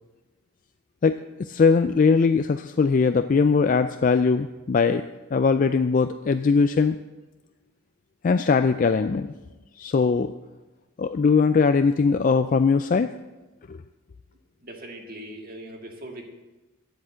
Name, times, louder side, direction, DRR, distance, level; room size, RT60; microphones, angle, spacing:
voice 1, 1.0-5.0 5.3-7.0 8.2-9.3 9.8-10.3 11.0-13.1 13.7-13.8, left 5 dB, 40° left, 9 dB, 0.3 m, -20 dB
voice 2, 14.6-16.3, right 1 dB, 45° right, 2 dB, 1.7 m, -40 dB
10.5 x 8.0 x 7.5 m, 1.1 s
head